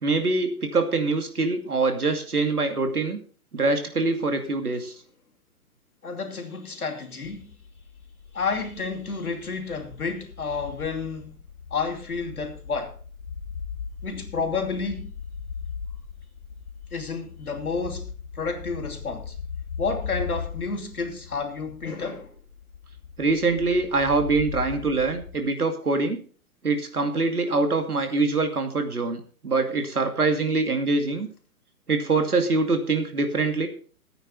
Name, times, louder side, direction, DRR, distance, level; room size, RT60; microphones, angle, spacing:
voice 1, 0.0-3.2 3.5-4.9 23.2-26.2 26.6-31.3 31.9-33.7, right 3 dB, 80° right, 2.6 m, -24 dB
voice 2, 6.0-7.5 8.3-11.4 11.7-12.9 14.0-15.1 16.9-18.1 18.3-19.3 19.8-22.3, left 4 dB, 75° left, 2.9 m, -30 dB
sound 1, 7.2-25.5, left 6 dB, 60° left, 1.4 m, -39 dB
14.5 x 9.0 x 4.2 m
figure-of-eight pair, 125°, 44 cm